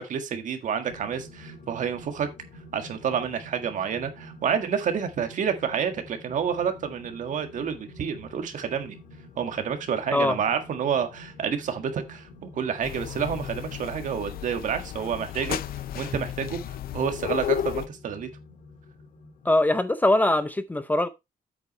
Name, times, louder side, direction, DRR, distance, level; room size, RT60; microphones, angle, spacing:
voice 1, 0.0-2.3 2.7-9.0 9.4-15.6 15.9-18.3, right 7 dB, 60° right, 1.8 m, -29 dB
sound 1, 0.9-19.8, left 1 dB, 60° left, 2.1 m, -48 dB
sound 2, 12.8-17.9, left 11 dB, 85° left, 0.5 m, -33 dB
voice 2, 19.5-21.1, left 1 dB, 10° left, 0.6 m, -22 dB
8.4 x 8.3 x 3.2 m
wide cardioid pair, 165°, 15 cm